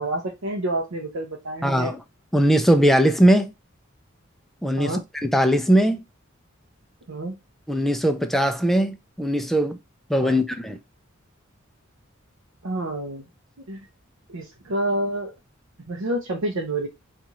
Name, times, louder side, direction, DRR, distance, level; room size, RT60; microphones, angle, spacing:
voice 1, 0.0-1.9 4.8-5.0 7.1-7.4 10.2-10.4 12.6-13.3 13.7-13.8 14.3-15.4 15.9-16.9, right 1 dB, 90° right, 0.8 m, -28 dB
voice 2, 1.6-2.0 2.3-3.5 4.6-6.0 7.7-9.8 10.1-10.8, equal, ahead, 0.4 m, -20 dB
4.1 x 2.5 x 2.9 m
head